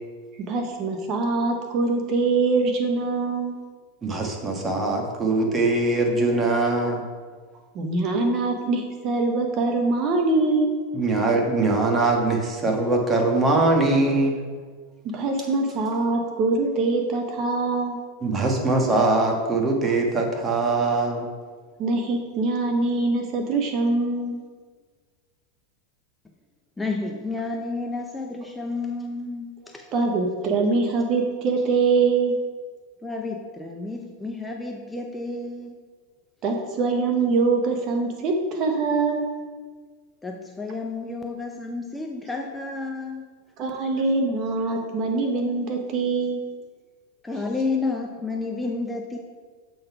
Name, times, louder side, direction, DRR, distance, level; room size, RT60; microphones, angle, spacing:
voice 1, 0.5-3.6 7.7-10.8 15.0-18.0 19.8-19.9 21.8-24.4 29.9-32.4 36.4-39.3 43.6-46.4, right 3 dB, 45° right, 3 dB, 1.0 m, -23 dB
voice 2, 4.0-7.0 10.9-14.4 18.2-21.3, right 2 dB, 20° right, 1 dB, 1.3 m, -22 dB
voice 3, 26.8-29.9 33.0-35.7 40.2-43.2 47.2-49.2, left 3 dB, 10° left, 1 dB, 0.5 m, -31 dB
7.4 x 3.9 x 4.6 m, 1.5 s
hypercardioid pair, 120°, 0 cm